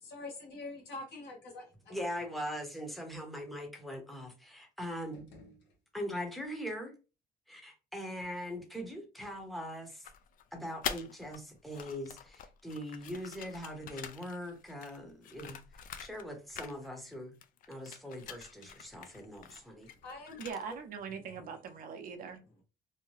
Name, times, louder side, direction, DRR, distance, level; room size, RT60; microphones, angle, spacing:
voice 1, 0.0-2.0 2.3-2.4 19.8-20.4 22.3-22.6, left 3 dB, 75° left, 1.4 m, -46 dB
voice 2, 1.9-5.3 5.9-7.0 7.5-10.1 10.5-15.6 16.0-17.3 17.7-19.9, equal, ahead, 0.8 m, -41 dB
sound 1, 4.9-6.4, left 1 dB, 90° left, 0.9 m, -59 dB
sound 2, 10.0-11.4 11.7-16.3 16.5-17.2 17.4-20.8, left 8 dB, 55° left, 0.4 m, -45 dB
voice 3, 20.4-22.4, right 6 dB, 55° right, 0.6 m, -41 dB
2.7 x 2.1 x 3.1 m
cardioid pair, 110°, 17 cm